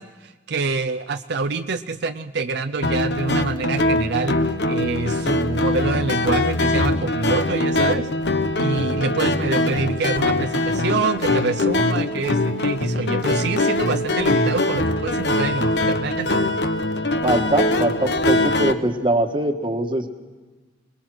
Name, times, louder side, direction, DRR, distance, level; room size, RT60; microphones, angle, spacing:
voice 1, 0.0-8.1 8.6-16.4, right 3 dB, 65° right, 6 dB, 0.6 m, -26 dB
sound 1, 2.8-18.7, left 2 dB, 70° left, 1.1 m, -22 dB
voice 2, 17.2-20.1, right 1 dB, 30° right, 6 dB, 1.4 m, -22 dB
26.0 x 20.5 x 6.3 m, 1.3 s
head